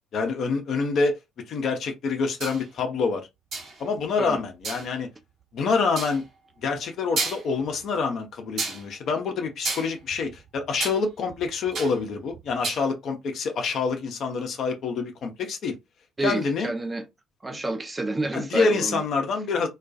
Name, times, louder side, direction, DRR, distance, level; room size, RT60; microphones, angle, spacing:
voice 1, 0.1-1.2 1.5-3.3 3.8-5.1 5.5-6.2 6.6-15.7 16.2-16.7 18.3-19.7, left 4 dB, 50° left, 0.6 m, -26 dB
sound 1, 2.4-2.6 3.5-3.8 4.6-4.9 6.0-6.2 6.8-6.9 7.2-7.7 8.6-8.9 9.6-11.0 11.3-12.0 12.3-12.8, right 3 dB, 55° right, 1.1 m, -31 dB
voice 2, 16.2-17.0 17.4-19.0, right 2 dB, 20° right, 0.6 m, -29 dB
2.3 x 2.2 x 2.5 m
figure-of-eight pair, 50°, 0 cm